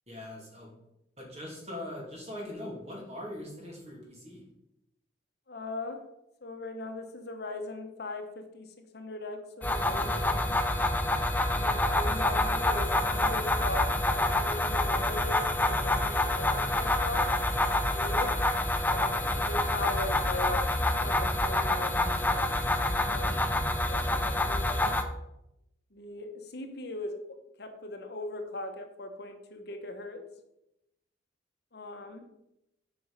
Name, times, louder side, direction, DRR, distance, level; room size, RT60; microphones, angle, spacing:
voice 1, 0.1-0.7 1.2-4.4, left 1 dB, 35° right, -2 dB, 2.8 m, -41 dB
voice 2, 5.5-6.0 6.4-10.6 11.5-17.3 17.6-18.3 18.9-22.5 23.0-23.5 23.9-24.9 25.9-27.2 27.6-30.2 31.7-32.2, left 2 dB, 55° left, 6 dB, 1.0 m, -39 dB
sound 1, 9.6-25.0, left 1 dB, 10° left, 0.5 m, -27 dB
8.3 x 4.9 x 5.5 m, 0.86 s
head